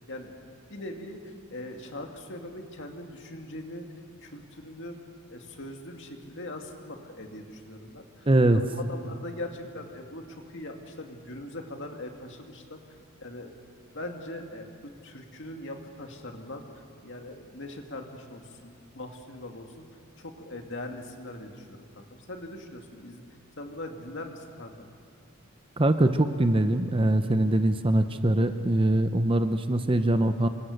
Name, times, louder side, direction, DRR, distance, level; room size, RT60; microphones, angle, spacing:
voice 1, 0.1-3.9 4.2-5.0 5.3-12.8 13.2-13.5 13.9-19.8 20.2-23.2 23.6-24.7, left 1 dB, 55° left, 3 dB, 2.3 m, -41 dB
voice 2, 8.3-8.6 25.8-30.5, right 1 dB, 25° right, 9 dB, 0.7 m, -23 dB
27.5 x 24.0 x 6.6 m, 2.3 s
head